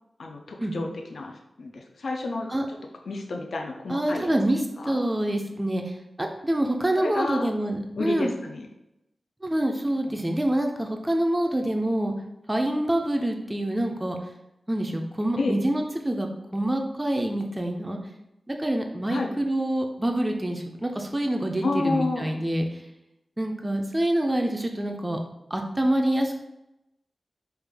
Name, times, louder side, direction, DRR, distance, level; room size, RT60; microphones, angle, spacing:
voice 1, 0.2-1.3 1.6-2.5 3.1-4.3 4.8-5.0 7.0-7.5 8.0-8.7 15.4-15.6 19.1-19.3 21.6-22.5, left 3 dB, 70° left, 2 dB, 0.3 m, -30 dB
voice 2, 3.9-8.3 9.4-12.1 12.5-14.2 14.7-18.0 18.5-22.7 23.4-25.2 25.5-26.3, right 1 dB, 15° right, 2 dB, 0.3 m, -26 dB
3.2 x 2.3 x 3.4 m, 0.90 s
wide cardioid pair, 125°, 0 cm